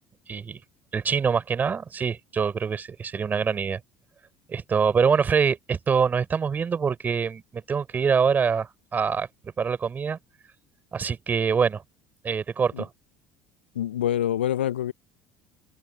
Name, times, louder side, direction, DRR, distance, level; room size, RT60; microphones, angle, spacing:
voice 1, 0.3-0.6 0.9-3.8 4.5-9.3 9.6-10.2 10.9-11.8 12.2-12.9, right 6 dB, 30° right, 5.6 m, -24 dB
voice 2, 13.7-14.9, left 11 dB, 80° left, 0.7 m, -26 dB
figure-of-eight pair, 60°, 6 cm